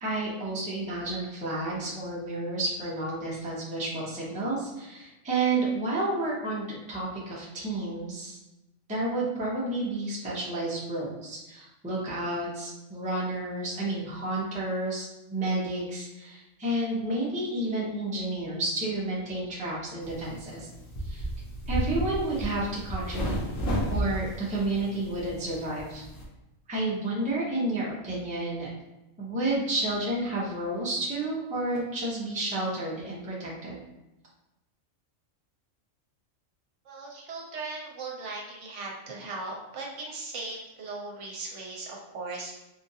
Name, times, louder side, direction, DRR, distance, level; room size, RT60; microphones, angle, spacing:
voice 1, 0.0-8.4 8.9-20.7 21.0-21.2 21.7-23.5 23.9-26.0 26.7-28.7 29.2-33.8, right 2 dB, 10° right, -6 dB, 0.5 m, -31 dB
sound 1, 20.0-26.2, equal, 75° left, 1.2 m, -33 dB
voice 2, 36.8-42.5, right 3 dB, 65° right, -2 dB, 1.0 m, -38 dB
3.6 x 2.5 x 2.7 m, 0.97 s
omnidirectional pair, 1.4 m